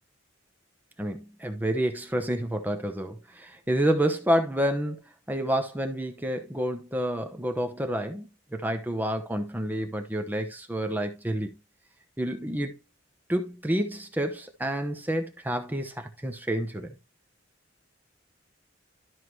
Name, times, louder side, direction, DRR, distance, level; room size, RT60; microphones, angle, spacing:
voice 1, 1.0-5.0 5.3-11.6 12.2-12.8 13.3-16.9, right 1 dB, 10° right, 0.8 m, -29 dB
13.0 x 4.7 x 3.2 m
head